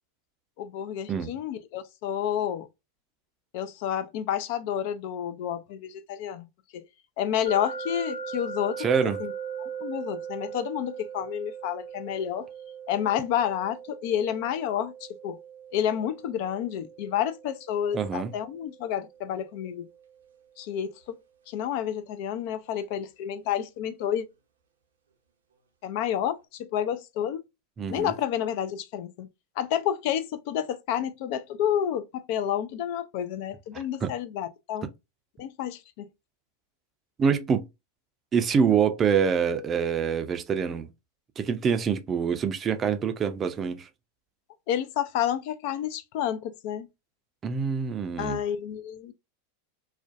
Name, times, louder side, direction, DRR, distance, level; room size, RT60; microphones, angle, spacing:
voice 1, 0.6-2.7 3.5-6.5 6.7-6.8 7.2-9.3 9.6-12.5 12.9-15.4 15.7-19.9 20.6-21.2 21.5-24.3 25.8-27.4 27.9-29.3 29.6-34.9 35.4-36.1 44.7-46.9 48.2-49.1, left 10 dB, 55° left, 0.3 m, -30 dB
sound 1, 7.5-20.4, right 6 dB, 80° right, 0.5 m, -40 dB
voice 2, 8.8-9.2 17.9-18.3 27.8-28.1 33.7-34.1 37.2-37.7 38.3-40.9 41.4-43.9 47.4-48.4, right 6 dB, 30° right, 0.4 m, -25 dB
2.5 x 2.1 x 2.4 m
hypercardioid pair, 95°, 0 cm